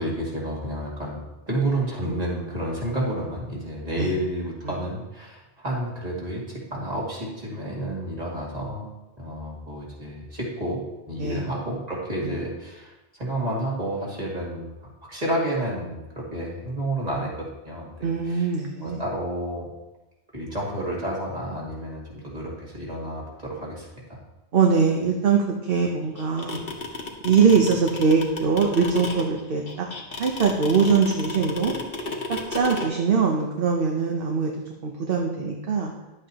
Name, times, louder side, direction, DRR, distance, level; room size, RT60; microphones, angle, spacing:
voice 1, 0.0-8.9 9.2-18.5 18.8-19.7 20.3-24.2, right 1 dB, 40° right, -5 dB, 2.4 m, -30 dB
voice 2, 18.0-19.0 24.5-26.6 27.2-29.9 30.2-31.7 32.3-34.5 34.8-35.9, right 5 dB, 65° right, 1 dB, 1.0 m, -22 dB
sound 1, 26.2-32.9, left 3 dB, 65° left, 1.4 m, -32 dB
11.0 x 7.9 x 2.9 m, 1.0 s
omnidirectional pair, 1.0 m